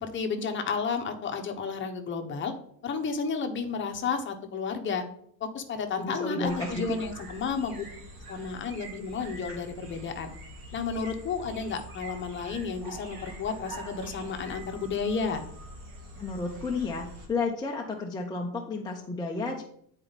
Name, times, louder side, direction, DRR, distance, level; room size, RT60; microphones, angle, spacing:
voice 1, 0.0-2.5 2.8-5.0 5.4-7.8 8.3-10.3 10.7-15.4, left 5 dB, 25° left, 6 dB, 0.9 m, -32 dB
voice 2, 6.0-6.8 16.2-19.6, left 3 dB, 10° left, 0 dB, 0.5 m, -32 dB
sound 1, 6.4-17.3, right 1 dB, 50° right, 2.2 m, -44 dB
9.5 x 4.4 x 4.0 m, 0.66 s
cardioid pair, 145°, 43 cm